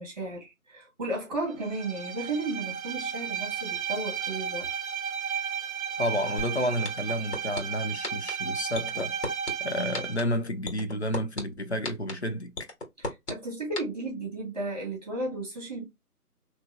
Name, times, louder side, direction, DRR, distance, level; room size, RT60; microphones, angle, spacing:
voice 1, 0.0-4.7 13.0-15.8, right 2 dB, 25° right, 1.4 m, -34 dB
Bowed string instrument, 1.6-10.2, right 7 dB, 60° right, 0.6 m, -34 dB
voice 2, 6.0-9.2 9.6-12.5, equal, 50° left, 0.5 m, -30 dB
sound 1, 6.4-6.5 6.8-7.6 8.0-8.3 8.7-9.5 9.9-10.2 10.7-11.4 11.8-12.1 12.6-13.3 13.8-13.9, left 2 dB, 80° left, 1.5 m, -32 dB
2.9 x 2.8 x 2.4 m
figure-of-eight pair, 170°, 46 cm